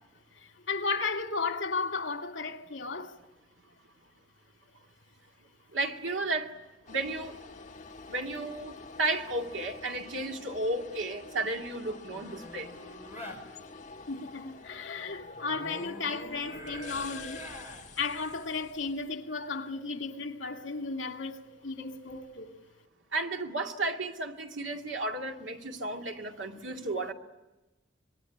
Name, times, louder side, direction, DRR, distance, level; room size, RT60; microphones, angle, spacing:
voice 1, 0.4-3.1 14.1-17.5 18.0-22.5, left 4 dB, 80° left, 2.3 m, -34 dB
voice 2, 5.7-6.6 6.9-7.4 8.1-12.7 23.1-27.1, right 2 dB, 85° right, 2.3 m, -33 dB
sound 1, 6.9-19.1, left 4 dB, 40° left, 1.5 m, -48 dB
sound 2, 12.1-13.4 15.4-17.9 21.9-22.2, equal, 10° right, 5.8 m, -45 dB
26.0 x 23.0 x 10.0 m
head